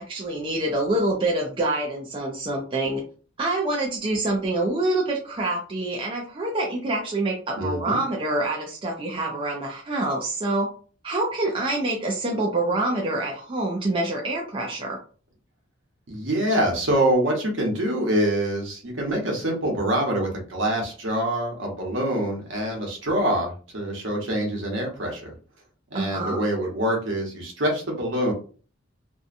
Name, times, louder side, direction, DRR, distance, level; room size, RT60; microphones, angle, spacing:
voice 1, 0.1-3.0 3.4-10.7 11.0-15.0 25.9-26.4, right 2 dB, 25° right, -1 dB, 0.4 m, -26 dB
voice 2, 7.6-8.0 16.1-25.3 25.9-28.3, right 1 dB, 65° right, 0 dB, 0.9 m, -25 dB
2.6 x 2.2 x 2.5 m, 0.39 s
head